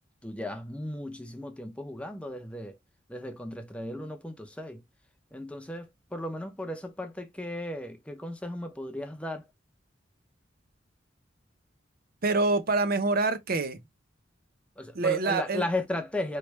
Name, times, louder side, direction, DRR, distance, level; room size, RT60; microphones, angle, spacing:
voice 1, 0.2-2.8 3.1-4.8 5.3-9.4 14.8-16.4, left 1 dB, 5° left, 0.7 m, -35 dB
voice 2, 12.2-13.8 14.9-15.6, right 3 dB, 50° right, 0.7 m, -26 dB
4.6 x 3.1 x 3.2 m
head